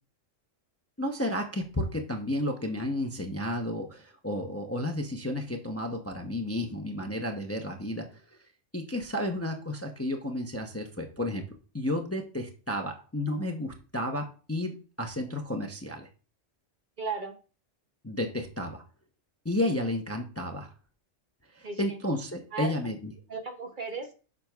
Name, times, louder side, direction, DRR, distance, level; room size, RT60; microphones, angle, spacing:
voice 1, 1.0-8.1 8.7-11.4 11.7-16.1 18.0-18.8 19.4-20.7 21.5-23.1, left 1 dB, 15° left, 3 dB, 0.6 m, -32 dB
voice 2, 17.0-17.4 21.6-22.0 22.5-22.8 23.3-24.1, right 4 dB, 45° right, 4 dB, 0.9 m, -35 dB
10.0 x 6.1 x 2.3 m, 0.36 s
omnidirectional pair, 1.3 m